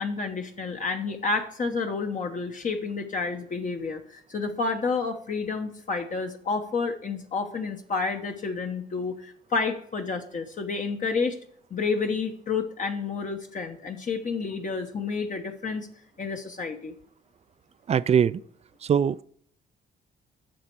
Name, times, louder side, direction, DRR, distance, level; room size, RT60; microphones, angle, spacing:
voice 1, 0.0-11.4 11.7-15.9 16.2-16.9, left 4 dB, 40° left, 1.0 m, -30 dB
voice 2, 17.9-18.4 18.8-19.2, right 8 dB, 35° right, 0.3 m, -22 dB
8.6 x 6.6 x 4.6 m
cardioid pair, 90°, 20 cm